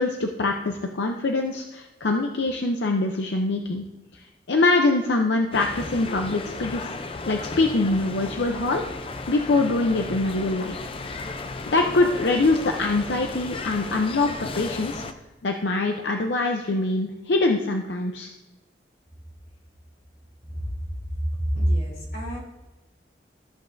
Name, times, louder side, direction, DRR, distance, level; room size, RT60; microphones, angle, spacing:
voice 1, 0.0-3.8 4.1-6.9 7.3-8.8 9.3-11.1 11.7-15.0 15.4-18.3, left 2 dB, 85° left, 3 dB, 0.6 m, -24 dB
sound 1, 5.5-15.1, left 3 dB, 30° left, 0.4 m, -35 dB
voice 2, 21.1-22.4, equal, 55° left, -5 dB, 3.3 m, -26 dB
14.0 x 7.5 x 2.6 m, 1.0 s
head